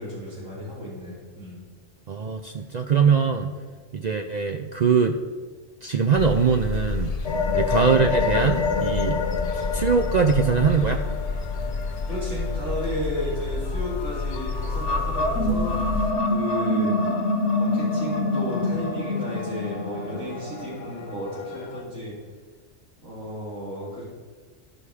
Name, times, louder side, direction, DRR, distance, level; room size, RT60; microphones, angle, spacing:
voice 1, 0.0-1.6 12.1-16.0 16.3-16.9 17.6-22.2 23.0-24.0, equal, 85° right, -7 dB, 3.9 m, -33 dB
voice 2, 2.1-3.5 3.9-5.2 5.8-7.1 7.5-9.2 9.5-11.0, right 6 dB, 60° right, 5 dB, 0.4 m, -22 dB
sound 1, 6.1-16.1, left 4 dB, 45° left, 0.5 m, -30 dB
sound 2, 7.2-13.3 13.7-21.8, left 3 dB, 65° left, 1.1 m, -27 dB
13.5 x 5.7 x 4.8 m, 1.4 s
omnidirectional pair, 1.3 m